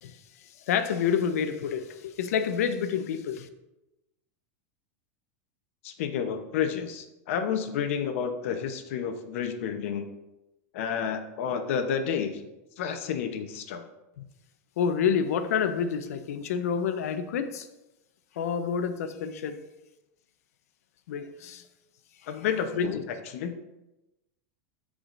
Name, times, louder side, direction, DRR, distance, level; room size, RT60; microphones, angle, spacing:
voice 1, 0.7-3.5 14.2-14.3 14.8-17.7 18.4-19.6 21.1-21.6 22.7-23.0, left 7 dB, 85° left, 9 dB, 0.8 m, -28 dB
voice 2, 5.8-10.1 10.7-12.3 12.8-13.8 22.3-23.0 23.3-23.5, left 7 dB, 60° left, 6 dB, 1.0 m, -30 dB
13.5 x 4.9 x 2.6 m, 0.95 s
supercardioid pair, 165°, 8 cm